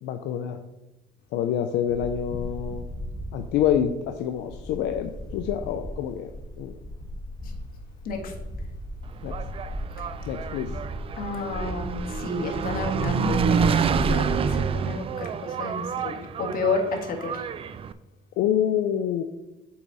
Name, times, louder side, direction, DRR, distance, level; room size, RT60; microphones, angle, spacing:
voice 1, 0.0-0.6 1.3-2.8 3.3-6.3 6.6-6.7 9.2-9.3 10.3-10.7 18.4-19.2, left 9 dB, 85° left, 6 dB, 0.5 m, -26 dB
sound 1, 1.9-14.7, equal, 25° left, 1.5 m, -35 dB
Engine, 9.1-17.9, right 7 dB, 35° right, 0.3 m, -28 dB
voice 2, 11.2-17.4, left 3 dB, 60° left, 2 dB, 1.5 m, -31 dB
7.1 x 4.8 x 4.0 m, 0.98 s
cardioid pair, 110°, 17 cm